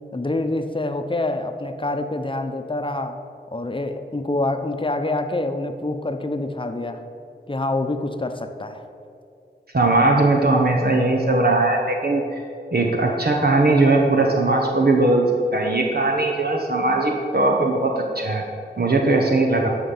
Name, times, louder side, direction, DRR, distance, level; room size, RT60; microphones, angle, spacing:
voice 1, 0.1-3.2 3.5-7.0 7.5-8.8, left 2 dB, 25° left, 7 dB, 0.8 m, -26 dB
voice 2, 9.7-12.4 12.7-18.4 18.8-19.7, right 2 dB, 60° right, 1 dB, 1.0 m, -19 dB
11.5 x 5.3 x 7.1 m, 2.5 s
wide cardioid pair, 65°, 19 cm